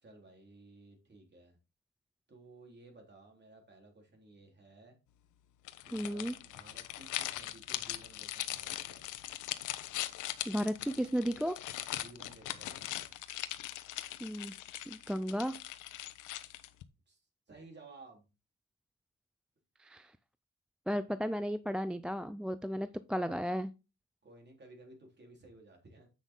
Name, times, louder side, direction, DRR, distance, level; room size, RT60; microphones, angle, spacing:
voice 1, 0.0-1.6 2.3-5.1 5.9-9.1 11.9-13.1 17.1-17.2 17.5-18.2 24.2-26.1, right 2 dB, 35° right, 3.6 m, -56 dB
sound 1, 5.6-16.8, left 14 dB, 85° left, 0.8 m, -41 dB
voice 2, 5.9-6.3 10.5-11.6 14.2-14.6 14.9-15.6 19.8-20.1 20.9-23.7, equal, 5° right, 0.4 m, -34 dB
8.2 x 6.1 x 3.7 m
cardioid pair, 90°, 30 cm